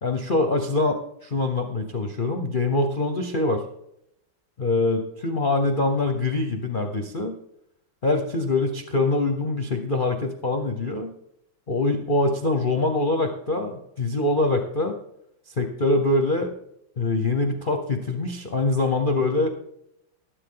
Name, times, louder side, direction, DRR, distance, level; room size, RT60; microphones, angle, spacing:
voice 1, 0.0-3.6 4.6-7.4 8.0-11.1 11.7-14.9 15.6-16.5 17.0-19.5, left 2 dB, 50° left, 5 dB, 0.6 m, -24 dB
13.0 x 11.5 x 3.8 m, 0.76 s
omnidirectional pair, 2.3 m